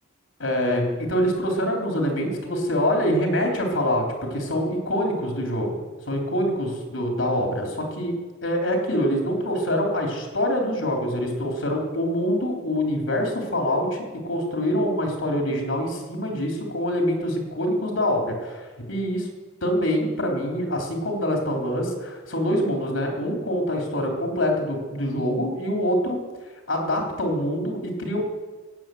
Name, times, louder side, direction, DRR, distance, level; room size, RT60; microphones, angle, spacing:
voice 1, 0.4-5.8 6.1-8.2 8.4-19.3 19.6-26.2 26.7-28.2, equal, 80° left, 1 dB, 3.3 m, -25 dB
16.0 x 9.2 x 7.7 m, 1.3 s
head